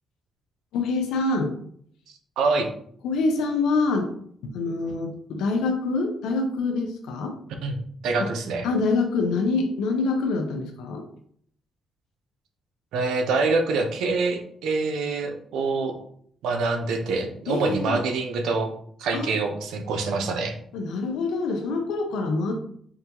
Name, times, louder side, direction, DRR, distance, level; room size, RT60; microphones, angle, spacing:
voice 1, 0.7-1.5 3.0-4.1 4.4-7.4 8.2-8.3 8.6-11.1 17.5-18.0 19.1-19.3 20.7-22.6, left 3 dB, 90° left, 4 dB, 0.6 m, -25 dB
voice 2, 2.4-2.7 7.6-7.8 8.0-8.7 12.9-16.0 16.4-18.7 19.0-20.5, right 3 dB, 85° right, 4 dB, 0.6 m, -25 dB
4.7 x 2.3 x 2.9 m, 0.63 s
cardioid pair, 90°, 0 cm